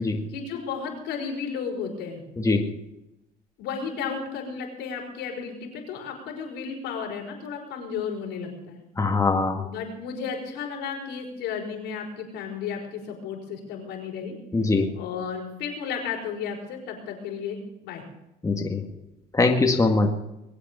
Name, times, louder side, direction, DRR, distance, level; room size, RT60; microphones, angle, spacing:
voice 1, 0.0-2.2 3.6-8.8 9.6-14.4 14.9-18.0, left 6 dB, 90° left, 0 dB, 5.3 m, -33 dB
voice 2, 9.0-9.6 14.5-14.9 18.4-18.8 19.3-20.1, left 3 dB, 20° left, 2 dB, 1.9 m, -22 dB
21.5 x 8.4 x 6.9 m, 0.89 s
cardioid pair, 110°, 17 cm